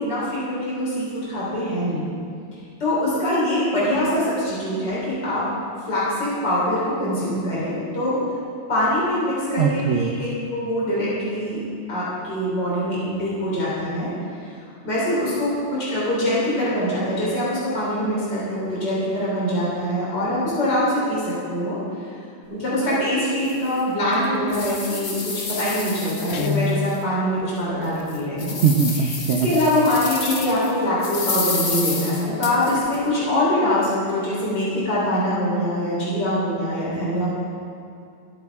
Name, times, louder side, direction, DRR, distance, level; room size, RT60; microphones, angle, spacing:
voice 1, 0.0-2.1 2.8-5.5 5.9-8.2 8.7-11.6 11.9-14.1 14.8-21.8 22.5-25.2 25.5-28.6 29.4-37.3, left 1 dB, 60° left, -8 dB, 4.5 m, -23 dB
voice 2, 9.6-10.1 28.6-29.5, right 6 dB, 75° right, 3 dB, 0.6 m, -20 dB
sound 1, 22.9-23.0 23.5-23.6 24.1-27.0 27.4-27.5 28.0-30.7 31.0-33.0, left 3 dB, 35° left, 1.1 m, -30 dB
Guitar, 26.3-27.1, left 6 dB, 75° left, 0.7 m, -25 dB
24.5 x 8.9 x 3.6 m, 2.5 s
omnidirectional pair, 2.2 m